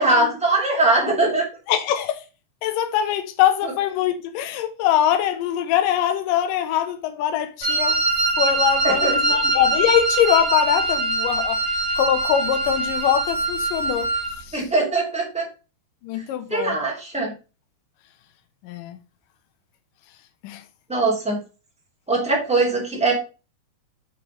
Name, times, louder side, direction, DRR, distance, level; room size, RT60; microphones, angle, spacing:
voice 1, 0.0-1.4 3.6-3.7 8.8-9.4 14.5-15.5 16.5-17.3 20.9-21.4 22.1-23.1, right 3 dB, 5° right, 1.3 m, -21 dB
voice 2, 1.7-2.2 2.6-8.0 8.4-11.6 12.0-14.1 16.0-16.8 18.6-19.0 20.4-20.6, left 10 dB, 75° left, 2.1 m, -22 dB
Wind instrument woodwind instrument, 7.6-14.4, right 2 dB, 50° right, 3.7 m, -23 dB
9.3 x 5.1 x 3.2 m
omnidirectional pair, 4.9 m